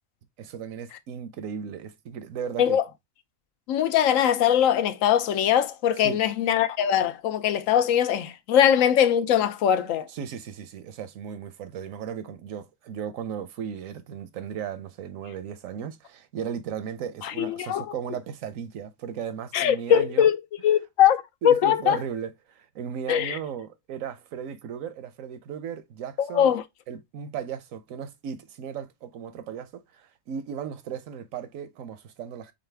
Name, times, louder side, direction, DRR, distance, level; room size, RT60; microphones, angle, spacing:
voice 1, 0.4-2.8 6.0-6.2 10.1-20.3 21.4-26.5 26.9-32.5, right 8 dB, 85° right, 1.1 m, -36 dB
voice 2, 3.7-10.1 17.2-17.9 19.5-20.4 20.6-22.0 23.1-23.4 26.2-26.6, left 9 dB, 90° left, 1.0 m, -21 dB
4.1 x 3.7 x 3.3 m
omnidirectional pair, 1.3 m